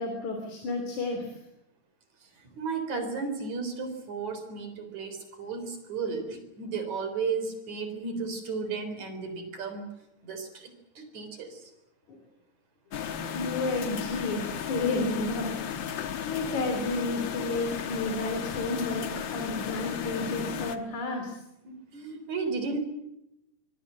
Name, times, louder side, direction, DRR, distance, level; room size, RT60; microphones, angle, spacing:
voice 1, 0.0-1.4 12.1-12.2 13.2-16.0 16.3-21.4, left 2 dB, 75° left, 4 dB, 4.6 m, -31 dB
voice 2, 2.4-9.9 10.2-11.7 21.7-22.8, right 4 dB, 75° right, 7 dB, 5.3 m, -34 dB
sound 1, 12.9-20.8, left 8 dB, 50° left, 1.6 m, -35 dB
24.5 x 22.0 x 7.6 m, 0.86 s
omnidirectional pair, 3.3 m